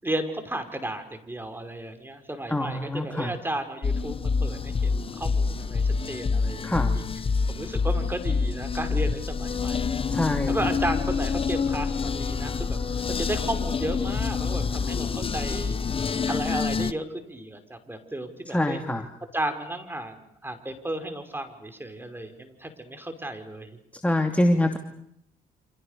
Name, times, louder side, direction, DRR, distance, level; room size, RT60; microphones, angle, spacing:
voice 1, 0.0-6.7 6.9-7.0 7.5-10.0 10.5-12.8 13.1-15.8 16.3-18.8 19.3-23.8, right 1 dB, 10° right, 7 dB, 5.7 m, -33 dB
voice 2, 2.5-3.3 6.6-6.9 10.1-10.5 18.5-19.1 24.0-24.8, left 1 dB, 10° left, 5 dB, 2.6 m, -24 dB
sound 1, 3.8-16.9, left 5 dB, 30° left, 1.0 m, -27 dB
29.0 x 27.0 x 6.9 m, 0.71 s
supercardioid pair, 65°, 17 cm